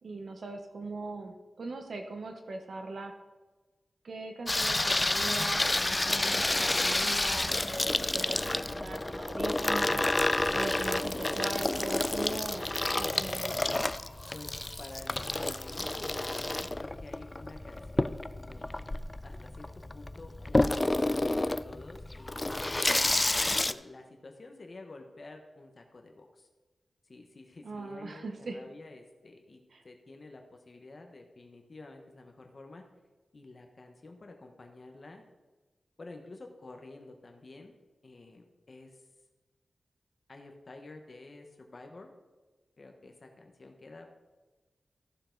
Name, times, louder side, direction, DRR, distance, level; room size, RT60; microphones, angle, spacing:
voice 1, 0.0-3.1 4.0-10.1 10.5-13.5 27.6-28.6 29.7-29.8, right 3 dB, 65° right, 5 dB, 0.9 m, -40 dB
Water tap faucet / Sink (filling or washing), 4.5-23.7, left 2 dB, 20° left, 0.4 m, -30 dB
voice 2, 14.8-18.8 19.2-19.7 19.9-23.2 23.6-26.5 27.0-32.8 33.3-35.2 36.0-37.7 38.0-39.0 40.3-42.1 42.8-44.1, left 2 dB, 45° left, 3 dB, 1.2 m, -50 dB
14.5 x 6.8 x 3.9 m, 1.2 s
wide cardioid pair, 110°, 0 cm